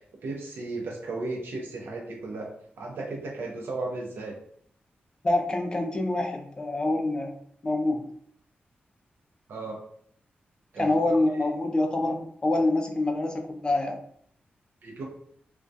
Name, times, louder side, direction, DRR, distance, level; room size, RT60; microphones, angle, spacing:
voice 1, 0.2-2.5 2.8-4.3 9.5-9.8 10.7-11.5 14.8-15.0, right 2 dB, 85° right, -1 dB, 0.5 m, -35 dB
voice 2, 5.2-7.3 7.6-8.0 10.8-14.0, left 2 dB, 25° left, 4 dB, 0.3 m, -26 dB
2.2 x 2.2 x 2.6 m, 0.63 s
wide cardioid pair, 160°, 4 cm